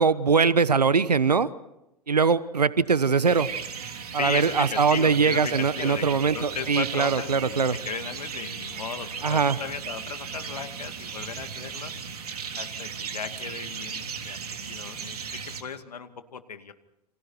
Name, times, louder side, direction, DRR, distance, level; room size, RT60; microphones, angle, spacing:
voice 1, 0.0-1.5 2.1-3.5 4.1-7.8 9.2-9.6, right 5 dB, 85° right, 17 dB, 1.1 m, -22 dB
sound 1, 3.2-15.6, right 6 dB, 70° right, 3.3 m, -36 dB
voice 2, 4.1-11.9 12.6-15.2 15.6-16.7, left 6 dB, 75° left, 9 dB, 2.4 m, -36 dB
29.5 x 27.5 x 4.5 m, 0.89 s
figure-of-eight pair, 100°, 20 cm